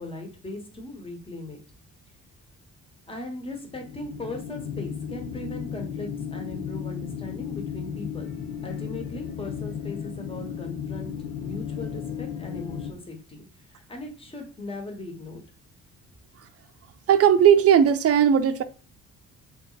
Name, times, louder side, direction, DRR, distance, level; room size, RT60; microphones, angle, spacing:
voice 1, 0.0-1.6 3.1-8.3 8.6-13.4 13.7-15.4, left 1 dB, 20° left, 1.2 m, -38 dB
sound 1, 3.6-12.9, left 8 dB, 75° left, 0.9 m, -34 dB
voice 2, 17.1-18.6, right 9 dB, 50° right, 0.5 m, -17 dB
3.3 x 3.1 x 4.0 m
cardioid pair, 90°, 30 cm